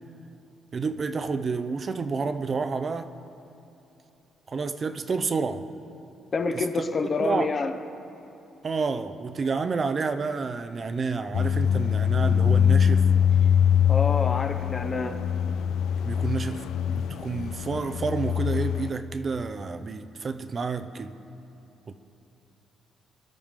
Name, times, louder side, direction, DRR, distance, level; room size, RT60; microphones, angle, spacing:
voice 1, 0.7-3.1 4.5-5.7 6.5-6.6 7.2-7.5 8.6-13.1 16.0-16.6 16.9-21.2 21.9-22.0, right 4 dB, 40° right, 9 dB, 0.7 m, -29 dB
voice 2, 6.3-7.7 13.9-15.2, left 4 dB, 40° left, 6 dB, 1.1 m, -27 dB
sound 1, 11.3-18.9, left 8 dB, 80° left, 0.4 m, -23 dB
22.0 x 12.0 x 3.7 m, 3.0 s
cardioid pair, 90°, 0 cm